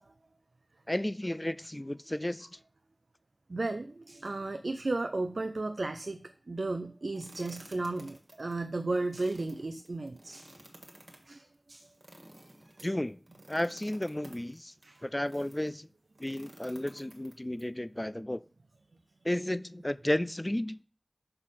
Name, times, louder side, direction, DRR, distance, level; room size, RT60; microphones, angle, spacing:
voice 1, 0.9-2.6 12.8-13.2 13.5-14.7 15.0-15.9 16.2-18.4 19.2-20.8, left 1 dB, 25° left, 16 dB, 0.3 m, -33 dB
voice 2, 3.5-10.6 11.3-11.9 14.8-15.0, right 2 dB, 90° right, 8 dB, 0.4 m, -34 dB
sound 1, 7.2-15.7 16.2-17.6, right 1 dB, 50° right, 1.6 m, -54 dB
6.5 x 4.1 x 5.6 m, 0.41 s
wide cardioid pair, 50°, 0 cm